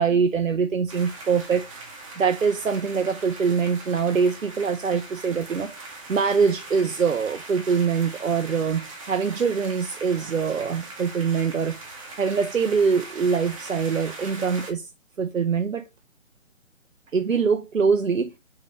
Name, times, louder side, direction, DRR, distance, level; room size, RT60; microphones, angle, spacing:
voice 1, 0.0-1.6 2.2-5.7 6.1-11.8 12.2-14.9 15.2-15.8 17.1-18.3, right 6 dB, 85° right, 0.7 m, -23 dB
sound 1, 0.9-14.7, right 3 dB, 25° right, 0.9 m, -41 dB
5.6 x 2.8 x 3.3 m
figure-of-eight pair, 145°, 39 cm